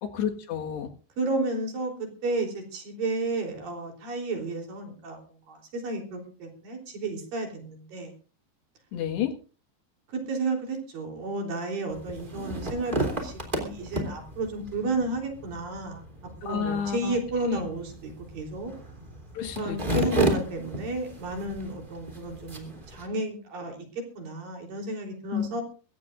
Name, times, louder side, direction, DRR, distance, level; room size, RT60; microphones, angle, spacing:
voice 1, 0.0-0.9 8.9-9.3 16.4-17.2 17.5-17.7 19.4-20.3 25.3-25.5, left 8 dB, 70° left, 3 dB, 3.7 m, -30 dB
voice 2, 1.2-1.9 2.2-5.2 5.5-8.1 10.1-16.0 16.4-18.7 19.6-23.8 24.2-25.6, right 2 dB, 55° right, 2 dB, 5.1 m, -32 dB
sound 1, 11.9-23.1, right 1 dB, 15° right, 2.5 m, -34 dB
23.5 x 16.5 x 2.5 m, 0.37 s
omnidirectional pair, 5.2 m